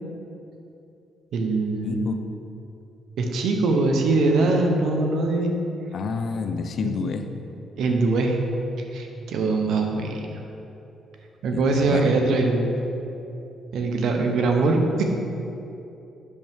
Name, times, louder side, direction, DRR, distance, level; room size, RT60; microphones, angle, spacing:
voice 1, 1.3-2.0 3.2-5.6 6.8-6.9 7.8-8.4 8.9-10.4 11.4-12.9 13.7-15.0, right 3 dB, 75° right, 3 dB, 0.9 m, -22 dB
voice 2, 1.8-2.2 5.9-7.3 11.5-12.1, left 5 dB, 60° left, 7 dB, 0.5 m, -29 dB
8.3 x 5.9 x 3.6 m, 2.8 s
cardioid pair, 90°, 0 cm